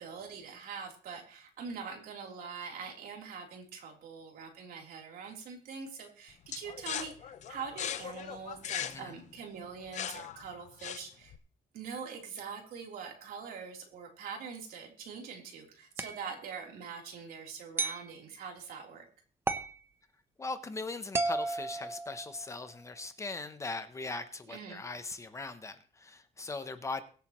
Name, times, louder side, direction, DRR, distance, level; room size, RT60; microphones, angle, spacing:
voice 1, 0.0-11.3 11.7-19.0 24.5-24.8, right 6 dB, 75° right, 1 dB, 3.5 m, -43 dB
sound 1, 6.5-11.4, left 9 dB, 50° left, 0.8 m, -39 dB
voice 2, 8.8-9.1 20.4-27.0, left 3 dB, 20° left, 10 dB, 0.7 m, -40 dB
sound 2, 16.0-16.2 17.8-18.1 19.5-19.8 21.1-22.6, right 3 dB, 15° right, 0.7 m, -33 dB
22.5 x 8.1 x 3.0 m, 0.42 s
cardioid pair, 175°, 16 cm